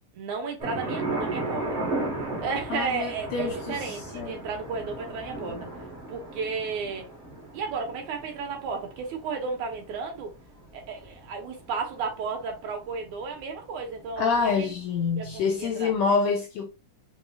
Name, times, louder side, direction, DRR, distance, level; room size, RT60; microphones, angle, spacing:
voice 1, 0.1-1.7 2.4-5.6 6.1-7.1 7.5-10.3 10.7-14.8 15.2-15.9, right 5 dB, 75° right, 2.6 m, -33 dB
sound 1, 0.6-14.4 14.7-14.8 15.1-15.9, right 2 dB, 45° right, 0.9 m, -36 dB
voice 2, 2.7-4.3 14.2-16.7, left 5 dB, 80° left, 1.6 m, -27 dB
5.3 x 3.0 x 2.3 m
omnidirectional pair, 3.6 m